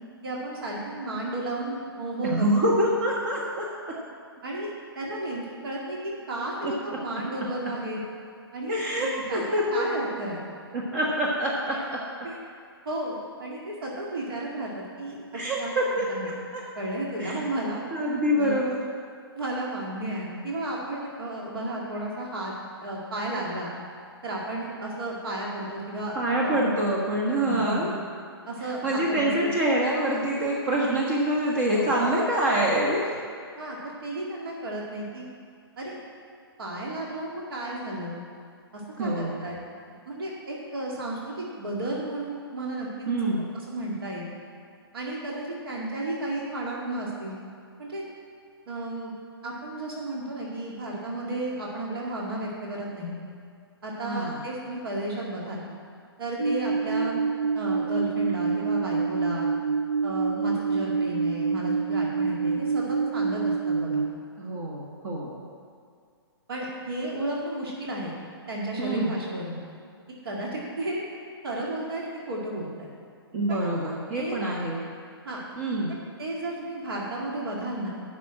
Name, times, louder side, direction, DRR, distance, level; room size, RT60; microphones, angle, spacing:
voice 1, 0.2-2.7 4.4-8.0 8.5-9.4 9.7-10.4 11.7-11.9 12.2-12.3 12.9-15.2 15.6-15.7 16.1-16.3 16.8-17.8 18.3-18.6 19.3-22.5 22.8-23.7 24.2-26.2 26.4-26.6 27.4-27.9 28.5-29.5 31.7-31.9 33.6-35.3 35.8-36.0 36.6-38.2 38.7-39.6 40.1-43.1 43.7-44.3 44.9-47.4 47.8-48.0 48.7-49.1 49.4-53.2 53.8-55.6 56.2-57.2 57.5-59.5 60.0-64.0 66.5-68.1 68.5-69.6 70.2-71.0 71.4-72.9 73.5-73.7 74.1-74.4 75.2-75.4 76.2-77.9, right 1 dB, 65° right, -3 dB, 2.2 m, -33 dB
voice 2, 2.2-3.9 6.6-7.0 8.7-9.9 10.7-12.0 15.3-16.6 17.2-17.4 17.9-18.8 26.1-27.9 28.6-33.1 39.0-39.4 43.0-43.5 54.0-54.4 64.4-65.4 68.8-69.1 73.3-74.8 75.6-75.9, right 1 dB, 40° right, -3 dB, 1.5 m, -26 dB
sound 1, 56.4-64.1, right 5 dB, 90° right, 0.7 m, -26 dB
9.2 x 6.3 x 7.5 m, 2.2 s
figure-of-eight pair, 125°, 13 cm